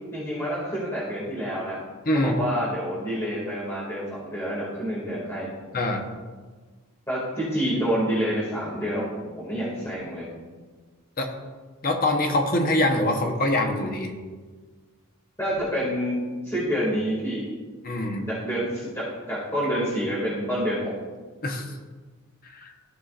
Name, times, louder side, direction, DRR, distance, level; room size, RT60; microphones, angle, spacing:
voice 1, 0.1-1.8 2.1-5.5 7.1-10.3 15.4-17.5 18.4-19.0 19.3-20.9, equal, 10° left, -8 dB, 2.2 m, -28 dB
voice 2, 2.1-2.4 5.7-6.0 11.2-11.3 11.8-14.1 17.8-18.3 21.4-21.8 22.4-22.7, left 1 dB, 40° left, 3 dB, 0.9 m, -24 dB
14.5 x 5.7 x 2.5 m, 1.4 s
head